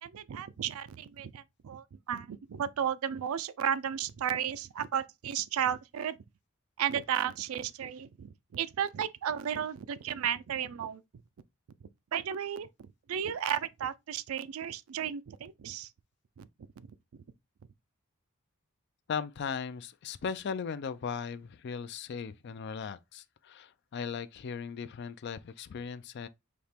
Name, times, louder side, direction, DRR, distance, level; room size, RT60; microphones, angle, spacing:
voice 1, 0.0-6.2 6.8-11.0 12.1-15.9 16.4-16.5 16.8-16.9, right 9 dB, 75° right, 0.4 m, -34 dB
voice 2, 19.1-26.3, left 6 dB, 50° left, 0.4 m, -38 dB
4.2 x 2.9 x 3.4 m
head